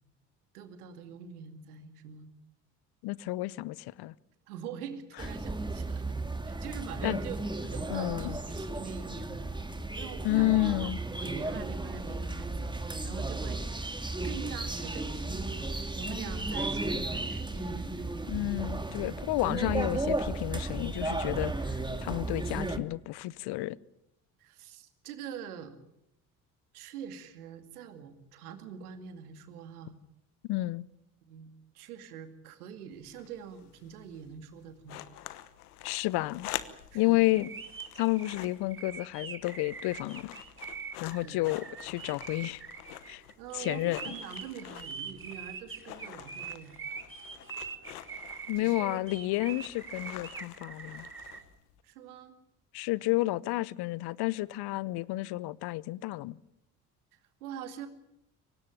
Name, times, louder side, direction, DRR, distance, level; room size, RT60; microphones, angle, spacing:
voice 1, 0.5-2.3 4.5-6.2 6.4-7.4 7.7-9.6 9.9-10.9 11.2-13.6 14.2-15.5 16.0-18.2 24.4-25.8 26.7-30.0 31.2-35.0 36.9-37.2 41.2-41.5 42.0-42.2 43.4-46.8 48.6-49.0 51.8-52.4 53.4-53.5 57.1-57.9, right 8 dB, 80° right, 2.4 m, -44 dB
voice 2, 3.0-4.1 7.0-7.2 7.9-8.4 10.2-11.0 18.3-23.8 30.5-30.8 35.8-36.5 36.9-37.5 38.0-40.3 41.0-42.6 43.1-43.2 43.5-44.1 48.5-51.1 52.7-56.4, left 18 dB, 60° left, 0.9 m, -31 dB
sound 1, 5.2-22.8, right 2 dB, 10° right, 2.5 m, -34 dB
sound 2, 32.9-51.8, left 13 dB, 80° left, 1.3 m, -47 dB
sound 3, 37.1-51.4, right 6 dB, 25° right, 3.6 m, -43 dB
24.5 x 18.5 x 9.2 m
hypercardioid pair, 55°, 44 cm